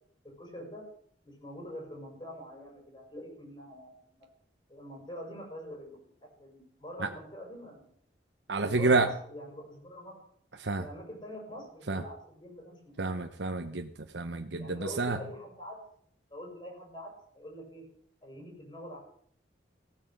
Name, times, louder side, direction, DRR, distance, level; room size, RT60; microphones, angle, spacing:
voice 1, 0.2-0.8 1.2-4.3 4.7-6.1 6.4-7.9 8.5-10.3 10.8-13.2 14.6-15.8 16.3-17.8 18.2-19.0, equal, 25° left, 0 dB, 6.2 m, -45 dB
voice 2, 8.5-9.1 10.6-10.9 11.9-12.0 13.0-15.2, right 3 dB, 70° right, 5 dB, 1.0 m, -29 dB
16.0 x 9.3 x 8.1 m, 0.62 s
head